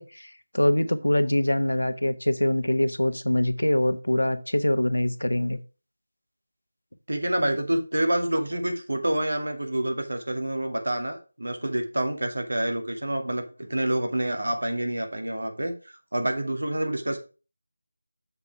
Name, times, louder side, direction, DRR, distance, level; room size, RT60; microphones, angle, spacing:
voice 1, 0.0-5.6, left 1 dB, 85° left, 0.9 m, -24 dB
voice 2, 7.1-17.2, right 1 dB, 75° right, 2.1 m, -27 dB
6.8 x 5.3 x 4.7 m
figure-of-eight pair, 165°, 0 cm